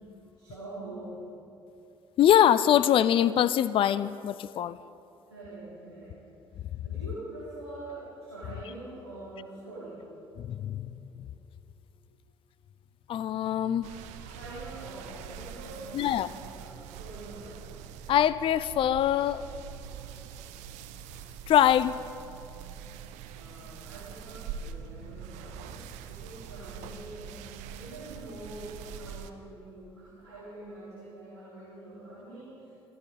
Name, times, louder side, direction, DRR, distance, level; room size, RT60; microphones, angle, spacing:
voice 1, 0.1-1.2 5.3-6.1 6.5-10.6 14.3-17.6 23.2-32.9, right 2 dB, 90° right, -10 dB, 3.1 m, -45 dB
voice 2, 2.2-4.8 10.4-10.9 13.1-13.9 15.9-16.3 18.1-19.5 21.5-22.0, left 10 dB, 40° left, 17 dB, 0.4 m, -23 dB
sound 1, 13.8-29.3, right 7 dB, 60° right, 0.8 m, -44 dB
24.0 x 14.5 x 3.9 m, 2.8 s
figure-of-eight pair, 50°, 13 cm